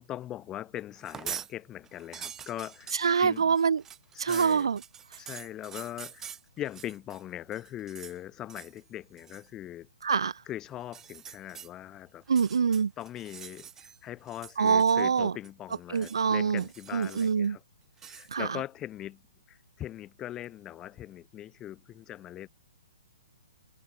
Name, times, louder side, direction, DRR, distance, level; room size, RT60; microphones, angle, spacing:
voice 1, 0.0-2.9 3.2-3.5 4.1-4.7 5.2-9.9 10.5-12.2 13.0-17.6 18.0-19.2 19.5-22.5, left 12 dB, 20° left, 1.3 m, -40 dB
sound 1, 1.0-1.5 1.9-7.2 7.5-8.2 8.5-8.8 9.2-9.5 10.8-11.7 12.2-14.0 14.3-15.2 15.4-16.2 16.6-17.4 18.0-18.3, right 8 dB, 15° right, 0.7 m, -45 dB
voice 2, 2.9-3.8 4.2-4.8 10.0-10.4 12.3-12.9 14.6-15.3 15.9-16.6 16.9-17.6 18.3-18.6, right 6 dB, 65° right, 0.4 m, -25 dB
figure-of-eight pair, 125°, 3 cm